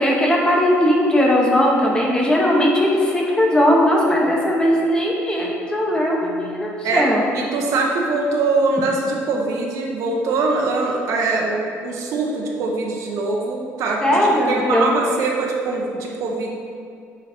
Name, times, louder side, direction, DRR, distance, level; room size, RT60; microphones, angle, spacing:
voice 1, 0.0-7.2 14.0-15.0, equal, 15° left, -2 dB, 1.0 m, -18 dB
voice 2, 7.3-16.5, right 3 dB, 70° right, -1 dB, 0.9 m, -22 dB
7.9 x 3.2 x 4.3 m, 2.4 s
cardioid pair, 120°, 6 cm